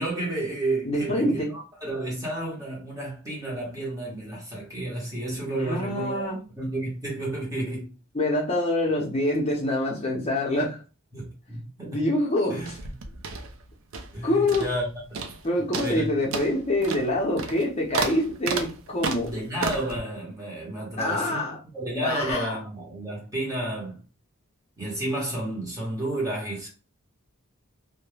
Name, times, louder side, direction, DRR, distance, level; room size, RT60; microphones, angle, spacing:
voice 1, 0.0-6.1 6.6-7.9 11.1-12.0 12.5-12.7 14.1-15.2 15.8-16.1 19.2-24.0 24.8-26.7, right 1 dB, 15° right, 0.8 m, -31 dB
voice 2, 0.8-1.5 5.6-6.4 8.1-10.8 11.8-12.8 14.2-14.6 15.4-19.3 21.0-21.6 22.0-22.6, left 1 dB, 30° left, 0.5 m, -25 dB
sound 1, 12.6-14.2 14.5-14.9 15.1-15.4 15.7-20.0, right 4 dB, 65° right, 0.4 m, -32 dB
2.2 x 2.1 x 3.1 m
head